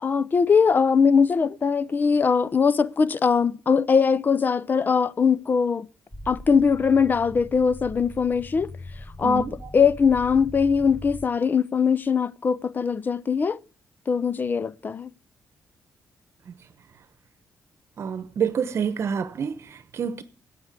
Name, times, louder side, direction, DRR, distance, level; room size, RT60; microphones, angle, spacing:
voice 1, 0.0-5.9 6.3-8.7 9.2-9.5 9.7-13.6 14.1-15.1, left 6 dB, 35° left, 0.6 m, -21 dB
sound 1, 6.1-11.3, left 2 dB, 10° left, 0.9 m, -41 dB
voice 2, 9.2-9.7 16.5-16.6 18.0-20.2, right 7 dB, 55° right, 0.9 m, -28 dB
12.5 x 8.2 x 8.2 m
cardioid pair, 105°, 5 cm